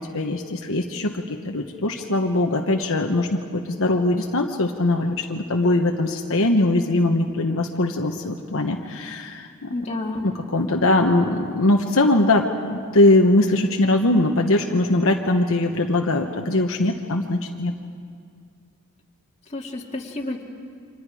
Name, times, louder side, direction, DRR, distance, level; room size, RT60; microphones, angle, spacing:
voice 1, 0.0-9.7 10.2-17.7, left 2 dB, 65° left, 2 dB, 1.2 m, -21 dB
voice 2, 9.7-10.2 19.5-20.4, left 2 dB, 30° left, 0 dB, 2.1 m, -30 dB
29.5 x 25.5 x 4.9 m, 2.2 s
head